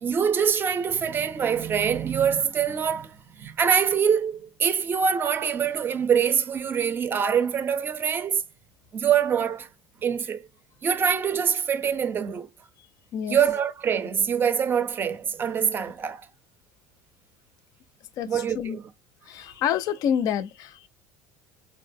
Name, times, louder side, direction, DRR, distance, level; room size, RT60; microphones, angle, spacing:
voice 1, 0.0-8.4 8.9-9.7 10.0-10.5 10.8-12.5 13.3-16.3 18.3-18.8, right 7 dB, 30° right, 0.5 m, -24 dB
voice 2, 18.2-18.8 19.3-20.9, left 9 dB, 55° left, 0.4 m, -28 dB
4.5 x 2.0 x 2.5 m
supercardioid pair, 115°, 7 cm